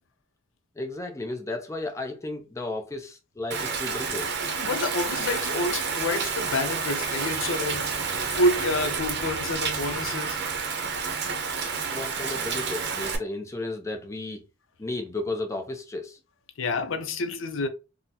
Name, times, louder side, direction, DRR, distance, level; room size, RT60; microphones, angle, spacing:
voice 1, 0.8-4.3 11.9-14.4 14.8-16.2, left 2 dB, 15° left, 0.5 m, -33 dB
Rain, 3.5-13.2, right 5 dB, 60° right, 0.6 m, -29 dB
voice 2, 4.4-7.9 8.4-10.4 16.6-17.7, left 2 dB, 75° left, 0.5 m, -28 dB
3.7 x 2.1 x 2.7 m
head